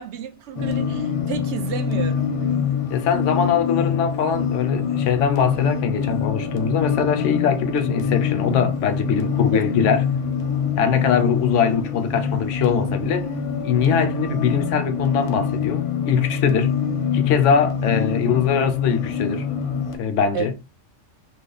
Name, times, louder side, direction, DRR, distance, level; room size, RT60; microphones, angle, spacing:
voice 1, 0.0-2.3 9.5-9.6 20.3-20.5, right 7 dB, 70° right, 0.8 m, -31 dB
sound 1, 0.6-20.0, left 6 dB, 40° left, 0.5 m, -25 dB
voice 2, 2.9-10.1 10.8-13.3 13.6-16.8 17.1-19.4 19.9-20.5, left 7 dB, 80° left, 0.9 m, -22 dB
3.0 x 2.0 x 3.9 m
omnidirectional pair, 1.2 m